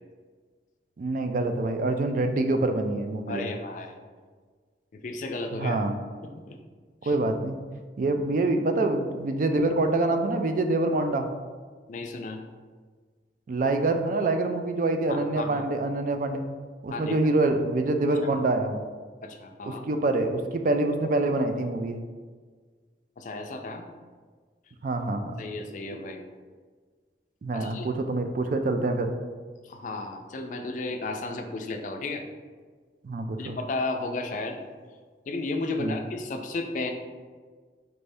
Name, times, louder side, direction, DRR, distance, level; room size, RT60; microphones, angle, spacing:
voice 1, 1.0-3.5 5.6-5.9 7.0-7.6 8.0-11.3 13.5-16.4 16.8-18.8 19.6-22.0 24.8-25.3 27.4-29.1 33.0-33.6 35.8-36.0, right 2 dB, 50° right, 6 dB, 0.3 m, -26 dB
voice 2, 3.3-4.0 4.9-5.8 6.2-6.6 7.0-7.1 11.9-12.4 15.1-15.7 16.9-17.2 18.1-18.3 19.2-19.8 23.2-23.9 25.4-26.2 27.5-27.9 29.6-32.2 33.4-34.6 35.3-36.9, left 2 dB, 45° left, 5 dB, 0.4 m, -33 dB
4.4 x 2.6 x 3.3 m, 1.5 s
head